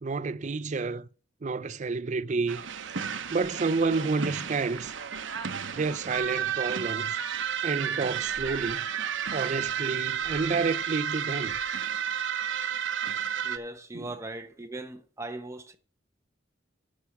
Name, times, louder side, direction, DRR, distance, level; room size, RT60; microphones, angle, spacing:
voice 1, 0.0-1.1 1.4-2.6 3.3-4.9 5.7-7.2 7.6-8.8 9.3-11.6 13.9-14.1, right 4 dB, 40° right, 0.4 m, -29 dB
sound 1, 2.5-13.6, right 8 dB, 80° right, 0.8 m, -32 dB
voice 2, 13.4-15.8, right 2 dB, 15° right, 1.1 m, -39 dB
12.5 x 4.8 x 7.1 m
head